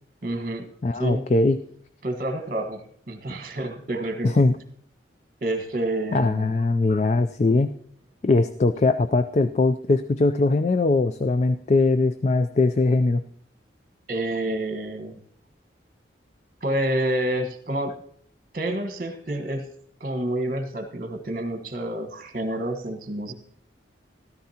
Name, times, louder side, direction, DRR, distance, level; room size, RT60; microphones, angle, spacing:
voice 1, 0.2-0.6 1.0-1.2 2.0-4.3 5.4-6.5 14.1-15.2 16.6-18.0 18.5-19.6 20.0-23.3, right 1 dB, 45° right, 7 dB, 1.4 m, -28 dB
voice 2, 0.8-1.6 4.2-4.6 6.1-7.7 8.2-13.2, left 3 dB, 40° left, 11 dB, 0.4 m, -21 dB
14.0 x 13.5 x 2.9 m, 0.62 s
head